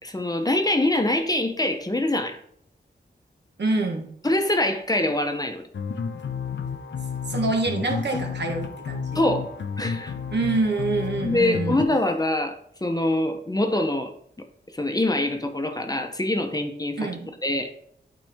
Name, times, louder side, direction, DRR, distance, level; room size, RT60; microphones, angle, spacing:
voice 1, 0.0-2.4 4.2-5.7 9.1-10.1 11.2-12.5 12.8-14.1 14.7-17.0 17.4-17.7, left 1 dB, 20° left, 5 dB, 0.8 m, -24 dB
voice 2, 3.6-4.1 7.3-9.2 10.3-11.8 17.0-17.3, right 3 dB, 70° right, 2 dB, 1.4 m, -26 dB
sound 1, 5.7-11.9, left 6 dB, 75° left, 0.6 m, -31 dB
9.1 x 4.2 x 3.5 m, 0.68 s
wide cardioid pair, 95°, 19 cm